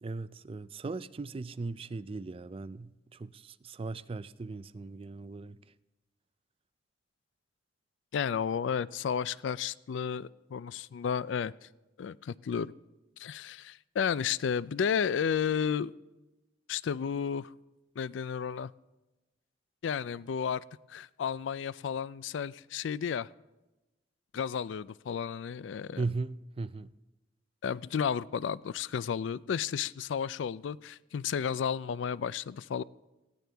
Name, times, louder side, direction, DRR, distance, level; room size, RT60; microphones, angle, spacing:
voice 1, 0.0-5.6 26.0-26.9, right 3 dB, 30° right, 0.4 m, -38 dB
voice 2, 8.1-11.7 12.0-12.7 13.2-15.9 16.7-17.5 18.0-18.7 19.8-20.6 20.9-23.3 24.3-26.0 27.6-32.8, left 7 dB, 85° left, 0.4 m, -32 dB
19.5 x 15.5 x 3.4 m
head